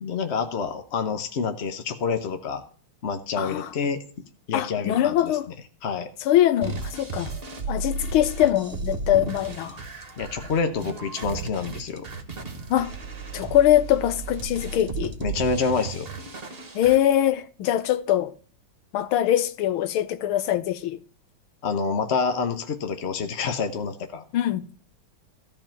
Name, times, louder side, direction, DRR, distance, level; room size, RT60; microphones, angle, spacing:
voice 1, 0.0-2.6 3.0-4.0 4.5-5.4 5.8-6.1 10.2-12.1 15.2-16.1 21.6-24.2, left 5 dB, 50° left, 0.8 m, -27 dB
voice 2, 3.4-3.7 4.5-5.5 6.3-7.3 7.7-9.8 12.7-12.9 13.3-15.1 16.8-18.3 18.9-21.0 24.3-24.8, left 12 dB, 85° left, 1.7 m, -22 dB
sound 1, 6.6-17.0, right 4 dB, 30° right, 1.6 m, -34 dB
14.0 x 4.9 x 8.9 m
omnidirectional pair, 2.3 m